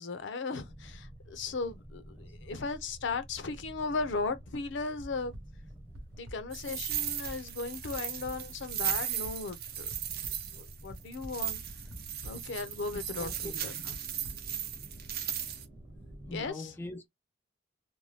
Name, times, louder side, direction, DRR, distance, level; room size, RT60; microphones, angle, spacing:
voice 1, 0.0-5.3 6.1-9.9 10.5-11.6 12.2-13.9 16.3-16.7, left 4 dB, 65° left, 0.5 m, -36 dB
sound 1, 0.6-16.5, right 1 dB, 20° right, 0.8 m, -50 dB
sound 2, 5.0-5.4 5.9-6.4 6.9-7.0 7.2-7.3 7.9-8.0 8.2-8.3 8.9-9.3 9.9-10.3 10.9-11.4 11.9-12.3 12.9-13.0 13.2-13.4 13.9-14.3, equal, 90° right, 0.9 m, -44 dB
sound 3, 6.5-15.6, right 10 dB, 55° right, 0.6 m, -37 dB
voice 2, 13.2-13.5 16.3-17.1, left 2 dB, 10° left, 0.4 m, -41 dB
2.6 x 2.2 x 3.2 m
head